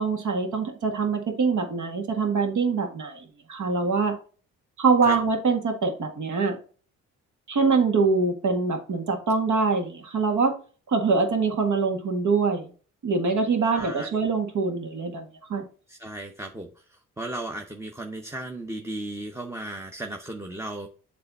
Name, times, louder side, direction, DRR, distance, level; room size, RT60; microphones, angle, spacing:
voice 1, 0.0-4.1 4.8-6.6 7.5-10.5 10.9-12.7 13.0-15.6, right 4 dB, 65° right, 4 dB, 1.8 m, -24 dB
voice 2, 13.7-14.2 15.9-20.9, right 1 dB, 10° right, 2 dB, 0.8 m, -35 dB
7.8 x 3.4 x 4.1 m, 0.39 s
cardioid pair, 100°, 32 cm